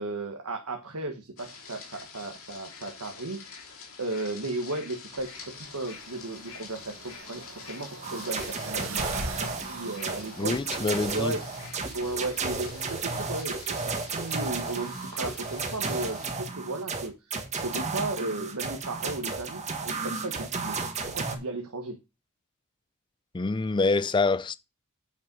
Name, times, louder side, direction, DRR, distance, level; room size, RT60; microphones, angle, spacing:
voice 1, 0.0-10.6 11.1-11.4 11.9-20.8 21.0-22.0, right 2 dB, 80° right, 1.4 m, -35 dB
sound 1, 1.4-16.3, left 5 dB, 65° left, 3.0 m, -47 dB
sound 2, 5.2-15.2, right 3 dB, 60° right, 2.1 m, -44 dB
sound 3, 8.0-21.4, right 4 dB, 30° right, 1.5 m, -33 dB
voice 2, 10.4-11.4 23.3-24.6, left 3 dB, 20° left, 0.4 m, -26 dB
8.8 x 5.6 x 5.3 m
head